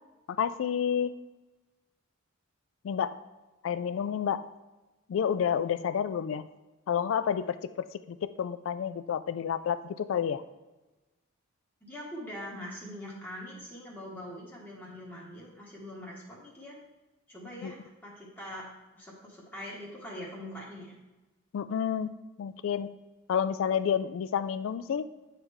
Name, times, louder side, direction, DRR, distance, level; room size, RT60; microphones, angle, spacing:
voice 1, 0.3-1.2 2.8-3.2 3.6-4.5 5.1-6.5 6.9-10.4 17.6-17.7 21.5-22.1 22.4-22.9 23.3-25.1, left 8 dB, 65° left, 13 dB, 0.3 m, -30 dB
voice 2, 11.8-16.8 17.3-18.7 18.9-21.0, equal, 10° left, -5 dB, 1.3 m, -43 dB
8.7 x 3.3 x 4.8 m, 1.1 s
head